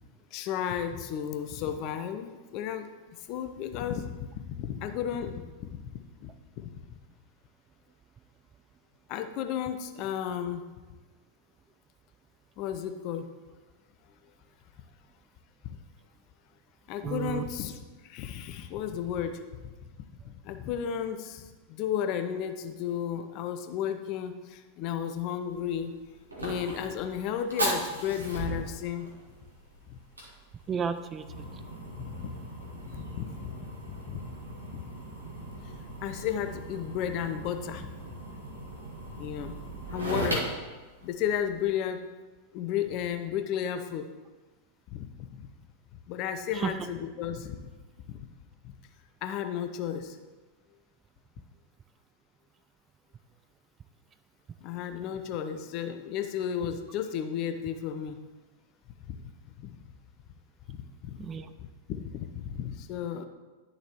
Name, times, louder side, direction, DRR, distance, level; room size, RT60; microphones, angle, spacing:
voice 1, 0.3-2.9 3.3-5.8 6.2-6.3 6.6-7.0 9.1-10.6 12.6-13.3 16.9-19.7 20.2-25.9 26.4-29.1 29.9-30.0 31.9-32.4 32.8-34.2 34.7-34.9 36.0-37.9 39.2-39.5 39.9-40.4 41.0-42.0 42.5-44.1 44.9-45.5 46.1-47.7 48.1-48.3 48.6-48.7 49.2-50.2 54.6-58.2 59.1-59.2 59.6-59.8 60.7-60.8 61.0-61.2 61.9-63.3, left 9 dB, 40° left, 8 dB, 0.6 m, -33 dB
voice 2, 17.0-17.5 30.7-31.6 46.5-46.8 61.2-61.5, right 7 dB, 25° right, 11 dB, 0.3 m, -33 dB
Fire, 25.5-41.7, right 1 dB, 80° right, 1.6 m, -38 dB
10.5 x 6.6 x 3.0 m, 1.3 s
figure-of-eight pair, 90°, 0 cm